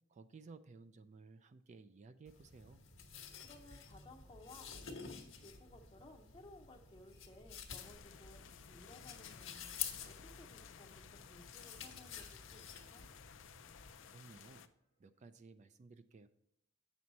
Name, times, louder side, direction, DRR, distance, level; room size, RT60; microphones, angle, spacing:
voice 1, 0.1-2.8 14.1-14.7 15.0-16.3, right 4 dB, 35° right, 11 dB, 0.4 m, -57 dB
sound 1, 2.3-14.1, left 8 dB, 85° left, 1.2 m, -50 dB
sound 2, 3.2-15.1, right 1 dB, 60° right, 2.1 m, -70 dB
voice 2, 3.4-13.0, left 2 dB, 25° left, -1 dB, 0.6 m, -59 dB
sound 3, 7.8-14.7, left 8 dB, 70° left, 0.5 m, -57 dB
8.5 x 6.2 x 4.0 m, 0.74 s
head